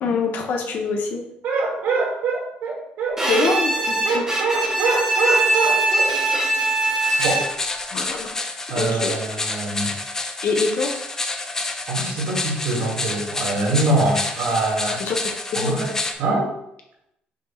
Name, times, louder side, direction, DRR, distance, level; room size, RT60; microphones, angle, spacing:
voice 1, 0.0-1.2 3.3-4.2 7.9-8.3 8.7-9.1 10.4-10.9 15.0-15.2 15.5-15.8, left 4 dB, 65° left, 2 dB, 1.1 m, -24 dB
voice 2, 1.4-6.1 7.2-7.5 8.7-9.9 11.9-15.0 15.5-16.5, right 3 dB, 80° right, -2 dB, 2.2 m, -24 dB
Bowed string instrument, 3.2-7.8, right 2 dB, 15° right, 1.2 m, -21 dB
sound 1, 7.0-16.1, left 2 dB, 15° left, 0.6 m, -29 dB
6.2 x 3.0 x 5.7 m, 0.81 s
cardioid pair, 145°, 3 cm